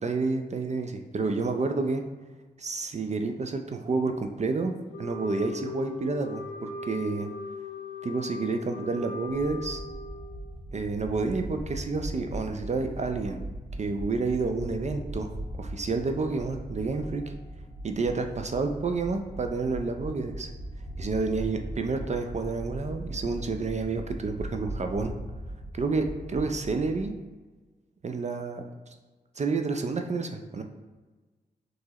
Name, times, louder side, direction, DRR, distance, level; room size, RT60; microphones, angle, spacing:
voice 1, 0.0-2.0 2.6-7.3 8.0-9.8 10.7-13.4 13.8-15.3 15.6-17.3 17.8-20.5 21.0-25.1 25.7-27.1 28.0-28.6 29.4-30.6, right 3 dB, 40° right, 5 dB, 0.4 m, -29 dB
Wind instrument woodwind instrument, 4.9-10.5, left 3 dB, 75° left, 0.4 m, -39 dB
sound 1, 9.3-27.1, right 1 dB, 35° left, 1.2 m, -39 dB
4.5 x 3.1 x 2.9 m, 1.3 s
cardioid pair, 50°, 18 cm